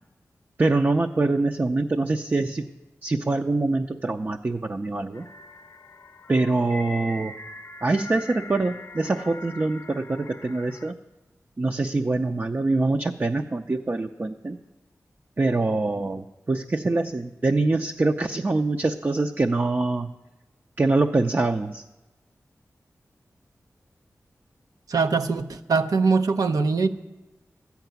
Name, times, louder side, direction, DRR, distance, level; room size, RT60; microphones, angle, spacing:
voice 1, 0.6-2.7 3.0-5.2 6.3-7.3 7.8-10.9 11.6-14.6 15.4-20.1 20.8-21.8, right 2 dB, 35° right, 4 dB, 0.5 m, -24 dB
sound 1, 5.1-10.9, left 2 dB, 45° left, 0.6 m, -42 dB
voice 2, 24.9-26.9, right 4 dB, 85° right, 8 dB, 0.7 m, -22 dB
13.0 x 5.9 x 9.2 m, 1.1 s
cardioid pair, 55°, 6 cm